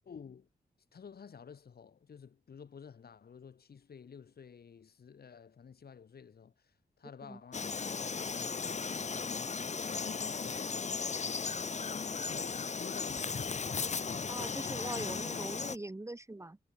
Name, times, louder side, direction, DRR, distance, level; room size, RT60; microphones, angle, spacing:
voice 1, 0.0-0.5 0.9-6.5 7.0-9.3 9.8-10.8 11.2-11.9 12.2-13.6, left 6 dB, 65° left, 2.6 m, -52 dB
Frog, 7.5-15.8, left 5 dB, 40° left, 1.4 m, -36 dB
voice 2, 14.3-16.6, right 2 dB, 15° right, 1.6 m, -42 dB
wide cardioid pair, 100°, 17 cm